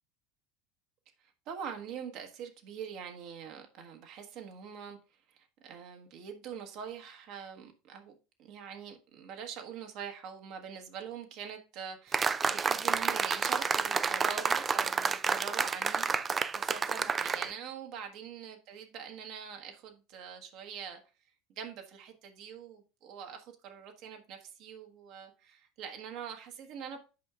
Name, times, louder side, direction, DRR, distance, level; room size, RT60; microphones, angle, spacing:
voice 1, 1.5-5.0 5.3-8.1 8.4-21.0 21.5-27.0, right 7 dB, 50° right, 1.2 m, -44 dB
sound 1, 12.1-17.5, right 5 dB, 25° right, 0.3 m, -30 dB
8.3 x 5.6 x 2.4 m
figure-of-eight pair, 70°, 0 cm